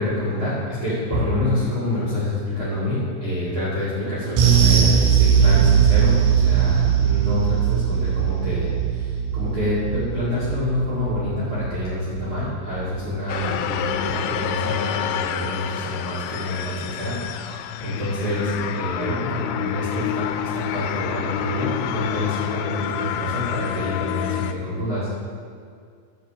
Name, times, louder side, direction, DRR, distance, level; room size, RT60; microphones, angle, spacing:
voice 1, 0.0-25.1, left 1 dB, 35° right, -11 dB, 2.5 m, -27 dB
sound 1, 4.4-13.0 13.3-13.5 13.9-14.0, right 8 dB, 85° right, 4.2 m, -20 dB
sound 2, 13.3-24.5, left 10 dB, 85° left, 2.6 m, -28 dB
12.5 x 5.7 x 7.5 m, 2.2 s
omnidirectional pair, 5.7 m